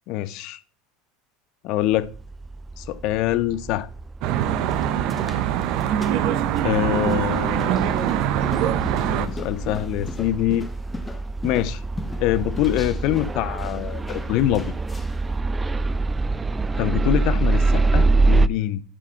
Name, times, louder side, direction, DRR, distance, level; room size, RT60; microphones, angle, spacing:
voice 1, 0.1-0.6 1.6-2.1 2.8-3.9 5.9-6.2 6.6-8.1 9.0-10.7 11.4-11.8 12.2-14.7 16.8-18.8, left 13 dB, 60° left, 0.7 m, -24 dB
sound 1, 1.9-18.5, right 3 dB, 20° right, 0.4 m, -26 dB
Traffic noise roadway noise, 4.2-9.3, right 10 dB, 60° right, 0.8 m, -23 dB
sound 2, 4.4-15.3, left 2 dB, 15° left, 1.2 m, -40 dB
11.5 x 5.0 x 4.4 m
hypercardioid pair, 95°, 0 cm